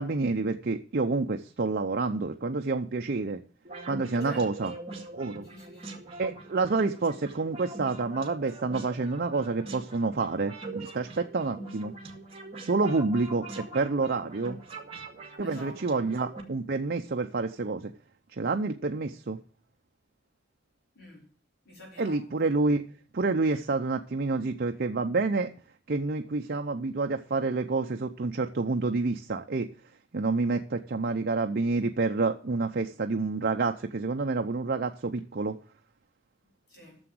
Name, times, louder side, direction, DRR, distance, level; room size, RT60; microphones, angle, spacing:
voice 1, 0.0-3.4 3.9-4.7 5.1-5.5 6.2-11.9 12.6-14.6 15.4-17.9 18.3-19.4 22.0-22.8 23.1-25.5 25.9-29.7 30.1-35.6, right 3 dB, 55° right, 0.6 m, -28 dB
sound 1, 3.6-16.4, right 3 dB, 30° right, 2.1 m, -43 dB
voice 2, 4.2-4.7 5.4-6.0 13.5-13.7 15.4-16.1 20.9-21.3 21.6-22.5 23.4-23.6 36.7-37.0, equal, 60° left, 4.7 m, -48 dB
9.8 x 7.0 x 7.7 m
head